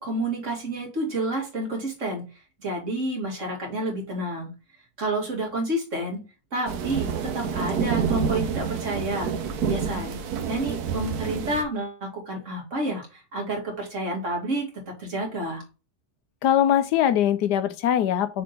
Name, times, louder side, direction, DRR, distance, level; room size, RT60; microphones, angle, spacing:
voice 1, 0.0-2.3 2.6-4.5 5.0-6.2 6.5-9.3 9.6-14.7 15.0-15.6, right 1 dB, 50° right, 2.5 m, -29 dB
sound 1, 6.7-11.6, right 6 dB, 75° right, 1.3 m, -28 dB
voice 2, 16.4-18.4, left 10 dB, 90° left, 1.3 m, -22 dB
6.6 x 3.7 x 4.0 m
omnidirectional pair, 1.7 m